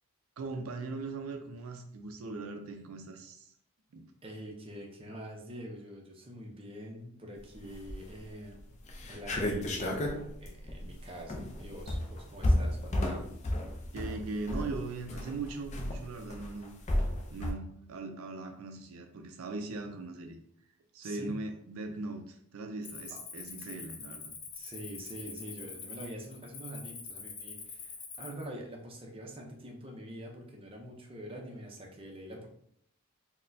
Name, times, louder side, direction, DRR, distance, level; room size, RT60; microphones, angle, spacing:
voice 1, 0.4-3.5 3.9-4.1 13.9-16.8 17.3-20.4 20.9-24.3, right 3 dB, 85° right, 5 dB, 0.4 m, -40 dB
voice 2, 4.2-8.8 9.0-13.3 21.0-21.4 23.1-23.2 23.6-23.8 24.5-32.5, equal, 25° right, 0 dB, 0.6 m, -45 dB
sound 1, 7.7-8.2 8.6-8.7 8.9-17.5, left 1 dB, 35° left, 0.4 m, -32 dB
Cricket, 22.8-28.4, left 5 dB, 75° left, 0.6 m, -45 dB
4.0 x 2.1 x 2.6 m, 0.68 s
head